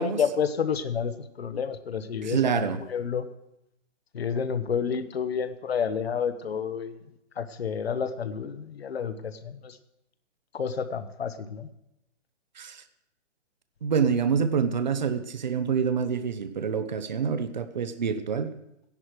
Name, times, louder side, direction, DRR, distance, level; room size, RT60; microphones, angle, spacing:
voice 1, 0.0-3.2 4.1-7.1 7.4-9.8 10.5-11.7, left 7 dB, 55° left, 10 dB, 1.2 m, -30 dB
voice 2, 2.2-2.8 12.6-12.8 13.8-18.5, right 6 dB, 40° right, 10 dB, 0.8 m, -26 dB
15.5 x 10.5 x 4.8 m, 0.86 s
hypercardioid pair, 180°, 37 cm